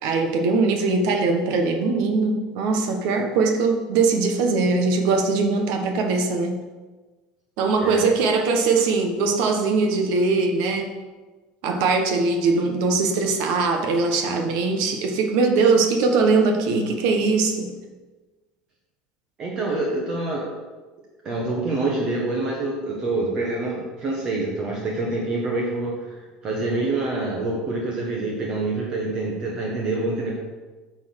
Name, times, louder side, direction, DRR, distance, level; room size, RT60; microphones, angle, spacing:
voice 1, 0.0-6.6 7.6-10.9 11.6-17.7, right 4 dB, 60° right, 3 dB, 1.4 m, -21 dB
voice 2, 19.4-20.5 21.2-26.1 26.4-30.4, right 2 dB, 25° right, -3 dB, 1.3 m, -26 dB
9.4 x 4.5 x 6.4 m, 1.3 s
cardioid pair, 170°, 3 cm